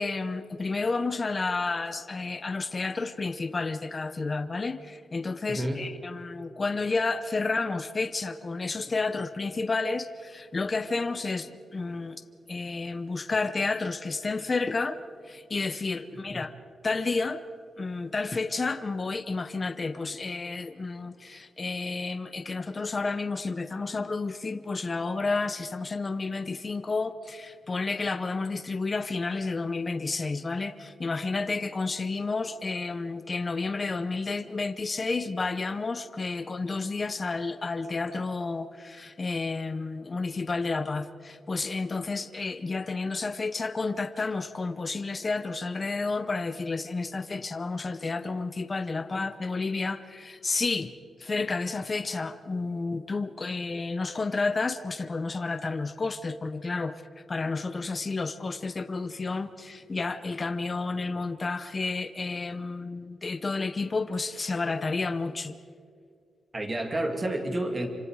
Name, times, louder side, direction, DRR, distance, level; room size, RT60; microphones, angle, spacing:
voice 1, 0.0-12.2 12.5-16.5 16.8-17.4 17.8-50.9 51.2-65.6, left 3 dB, 25° left, 10 dB, 0.7 m, -31 dB
voice 2, 5.5-5.9 16.1-16.4 66.5-67.9, right 1 dB, 20° right, 4 dB, 2.4 m, -30 dB
28.0 x 26.0 x 4.8 m, 2.2 s
wide cardioid pair, 180°, 0 cm